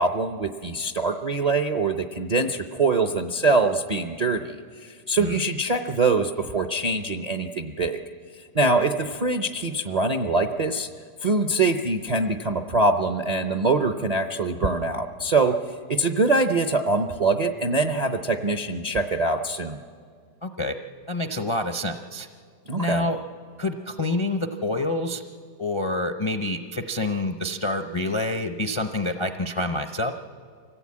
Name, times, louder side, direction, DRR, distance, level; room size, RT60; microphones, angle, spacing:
voice 1, 0.0-8.0 8.4-10.9 11.2-15.6 15.9-19.8 22.7-23.1, right 3 dB, 50° right, 5 dB, 0.4 m, -24 dB
voice 2, 20.4-20.7 21.1-22.3 22.8-23.2 23.6-25.2 25.6-30.1, left 2 dB, 45° left, 6 dB, 0.4 m, -27 dB
24.5 x 16.0 x 8.6 m, 2.1 s
omnidirectional pair, 1.7 m